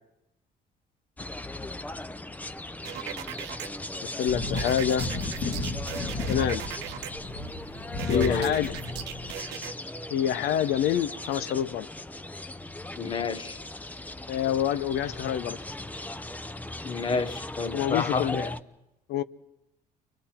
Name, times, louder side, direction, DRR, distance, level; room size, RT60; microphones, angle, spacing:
sound 1, 1.2-18.6, left 1 dB, 10° left, 0.7 m, -38 dB
sound 2, 2.8-3.7 4.6-7.1 8.0-9.7, right 12 dB, 90° right, 0.9 m, -38 dB
voice 1, 4.0-5.1 6.3-6.6 8.1-8.7 10.1-11.9 14.3-15.6 17.7-18.5 19.1-19.2, left 10 dB, 75° left, 0.8 m, -27 dB
sound 3, 4.3-9.3, left 2 dB, 45° left, 1.8 m, -33 dB
voice 2, 8.1-8.6 13.0-13.6 16.8-18.5, left 4 dB, 30° left, 1.1 m, -30 dB
29.5 x 24.0 x 4.4 m
cardioid pair, 110°, 17 cm